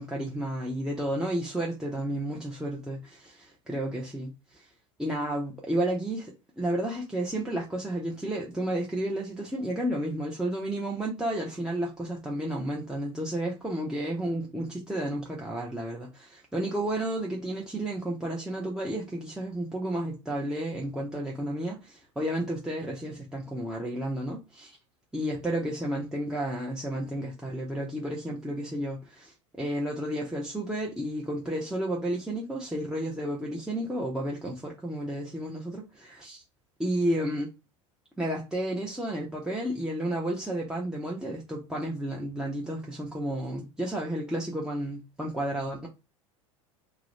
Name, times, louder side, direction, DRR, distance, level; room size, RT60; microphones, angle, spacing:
voice 1, 0.0-4.7 5.0-24.8 25.1-36.4 36.8-37.5 38.2-45.9, right 1 dB, 5° right, 0.6 m, -32 dB
2.4 x 2.0 x 3.1 m
hypercardioid pair, 85°, 17 cm